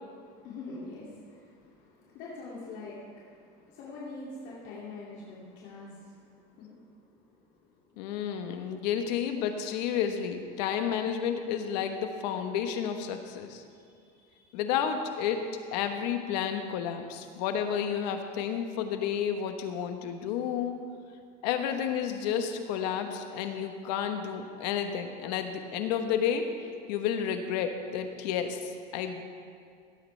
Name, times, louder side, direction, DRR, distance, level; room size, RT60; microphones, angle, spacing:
voice 1, 0.2-7.4 7.8-8.0 13.7-14.6, left 3 dB, 65° left, -6 dB, 2.6 m, -45 dB
voice 2, 8.0-13.6 14.5-15.5 15.7-20.7 21.4-29.2, left 8 dB, 80° left, 6 dB, 1.2 m, -31 dB
17.5 x 8.9 x 3.3 m, 2.3 s
supercardioid pair, 120°, 21 cm